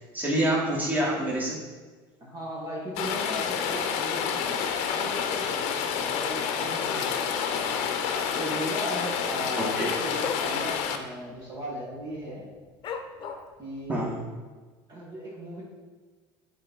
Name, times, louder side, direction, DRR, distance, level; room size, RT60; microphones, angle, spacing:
voice 1, 0.1-1.6 9.6-9.9 13.9-14.1, right 1 dB, 15° right, -5 dB, 2.3 m, -26 dB
voice 2, 2.2-7.8 8.4-9.7 10.0-12.5 13.6-14.0 14.9-15.6, equal, 35° right, -5 dB, 2.0 m, -37 dB
Rain, 3.0-11.0, left 7 dB, 65° left, 0.8 m, -29 dB
Dog, 5.3-5.7 6.0-6.1 6.4-7.8 8.1-8.2 8.5-8.7 9.1-10.5 10.9-11.0 11.3-11.7 12.2-12.3 12.8-13.6 14.1-14.2, left 6 dB, 40° left, 0.9 m, -38 dB
7.4 x 4.2 x 4.5 m, 1.4 s
supercardioid pair, 100°, 12 cm